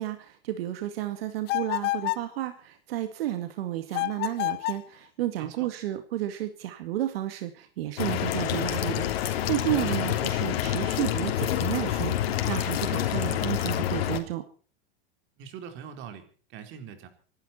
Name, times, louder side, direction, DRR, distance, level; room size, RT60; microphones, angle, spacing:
voice 1, 0.0-14.4, right 13 dB, 75° right, 8 dB, 2.2 m, -32 dB
sound 1, 1.5-2.3 3.9-4.9, left 21 dB, 35° left, 0.7 m, -29 dB
voice 2, 5.4-5.7 9.7-10.0 15.4-17.1, right 7 dB, 40° right, 7 dB, 3.9 m, -43 dB
sound 2, 8.0-14.2, left 11 dB, 80° left, 3.0 m, -27 dB
26.0 x 12.0 x 4.3 m, 0.40 s
supercardioid pair, 145°, 30 cm